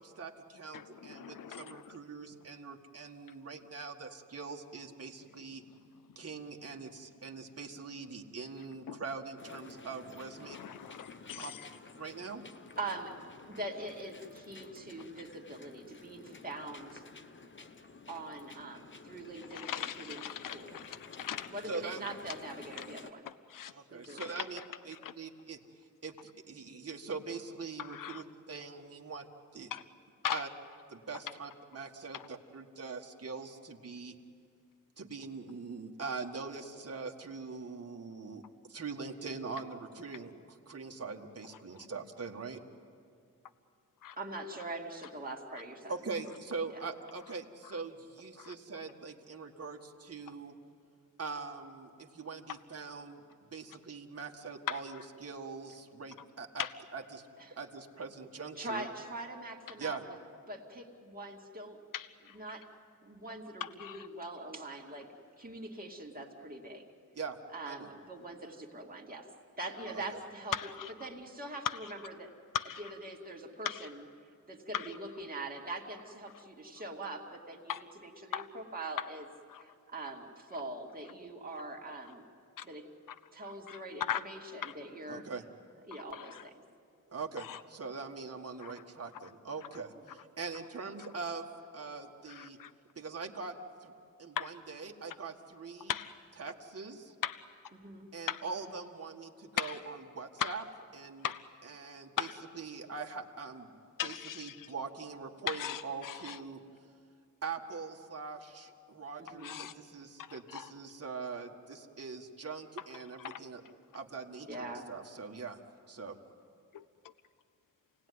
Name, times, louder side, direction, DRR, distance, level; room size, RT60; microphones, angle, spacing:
voice 1, 0.0-5.6 6.1-10.6 11.3-11.5 12.0-12.4 21.7-22.0 23.7-24.6 24.9-25.6 26.0-26.1 26.5-29.3 29.5-29.7 30.3-30.5 30.9-34.1 35.0-38.4 38.7-40.3 40.7-42.6 45.9-50.6 51.2-53.2 53.5-56.6 56.9-58.9 59.8-60.0 67.1-67.4 67.7-67.9 69.9-70.0 85.1-85.4 87.1-91.5 91.7-92.6 92.9-93.9 94.2-95.9 96.4-97.1 98.1-100.6 100.9-101.2 101.8-102.3 102.6-103.7 104.0-106.6 107.4-113.6 113.9-115.6 115.9-116.2, right 4 dB, 50° right, 2 dB, 1.7 m, -42 dB
voice 2, 0.7-2.0 8.9-9.0 10.4-11.7 19.5-21.5 22.1-22.4 22.7-22.9 23.2-23.7 24.2-25.1 27.8-28.2 29.7-29.9 30.2-30.5 31.1-31.2 32.1-32.3 41.7-41.9 44.0-44.2 45.5-45.6 47.6-47.8 48.4-48.5 52.5-52.6 54.7-55.1 56.6-56.7 59.9-60.0 61.9-62.4 63.6-64.1 70.5-71.1 71.6-71.9 72.5-72.9 73.6-73.9 74.7-75.0 76.3-76.4 77.7-77.9 78.3-78.5 79.0-79.1 79.5-79.6 80.0-80.1 82.6-82.7 83.1-84.3 84.6-84.7 85.9-86.5 87.4-87.6 88.6-88.7 89.2-89.3 92.3-92.7 94.4-94.5 95.9-96.2 97.2-97.4 98.3-98.4 99.6-99.8 100.4-100.6 101.2-101.5 102.2-102.4 104.0-104.7 105.5-106.4 109.4-109.8 110.2-110.7 112.8-113.4 116.7-116.8, left 10 dB, 80° left, 15 dB, 0.6 m, -39 dB
sound 1, 9.4-23.1, left 3 dB, 35° left, 1.0 m, -52 dB
voice 3, 12.8-13.1 13.5-17.0 18.1-20.8 21.5-23.2 23.9-24.4 44.2-46.1 46.7-46.9 57.4-57.6 58.5-60.2 60.5-61.8 62.2-62.7 63.0-65.1 65.4-66.8 67.5-69.3 69.6-70.7 71.0-72.3 72.6-74.1 74.5-79.3 79.5-82.2 82.6-82.9 83.3-85.4 85.8-86.5 90.0-90.2 97.7-98.1 109.2-109.6 114.4-114.9, right 2 dB, 25° right, 0 dB, 2.5 m, -43 dB
28.0 x 18.5 x 9.7 m, 2.4 s
wide cardioid pair, 135°, 32 cm